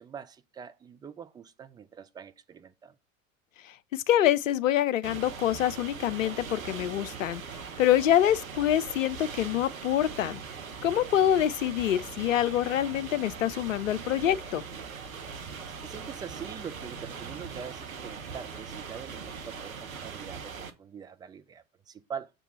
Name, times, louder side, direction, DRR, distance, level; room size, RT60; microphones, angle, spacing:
voice 1, 0.0-2.9 15.8-22.3, right 7 dB, 10° right, 0.4 m, -43 dB
voice 2, 3.6-7.4 7.8-10.4 10.8-14.6, left 11 dB, 70° left, 0.7 m, -26 dB
sound 1, 5.0-20.7, right 5 dB, 80° right, 1.0 m, -41 dB
6.8 x 3.7 x 6.2 m
figure-of-eight pair, 85°, 41 cm